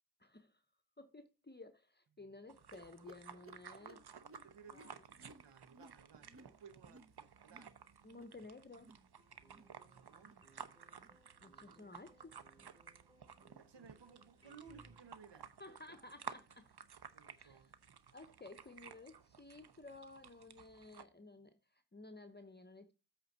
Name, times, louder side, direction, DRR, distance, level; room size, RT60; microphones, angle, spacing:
voice 1, 0.2-0.6 1.0-4.1 4.7-4.9 8.0-8.9 11.4-12.4 15.6-16.8 17.4-17.7 18.1-22.9, left 2 dB, 25° left, 0.9 m, -55 dB
sound 1, 2.5-21.0, right 7 dB, 65° right, 0.9 m, -55 dB
sound 2, 2.7-7.8 8.0-8.4 8.7-9.1 9.4-9.8 10.1-10.5 10.9-11.2 11.7-12.0 12.5-12.7 13.3-13.5 14.1-14.3 15.0-15.1 15.9-16.0, right 2 dB, 30° right, 1.0 m, -62 dB
voice 2, 4.4-7.8 9.7-10.3 13.6-16.0 17.1-17.7, right 6 dB, 85° right, 1.2 m, -60 dB
sound 3, 9.2-15.0, right 2 dB, 15° right, 3.4 m, -68 dB
8.1 x 4.4 x 6.1 m
cardioid pair, 45°, 42 cm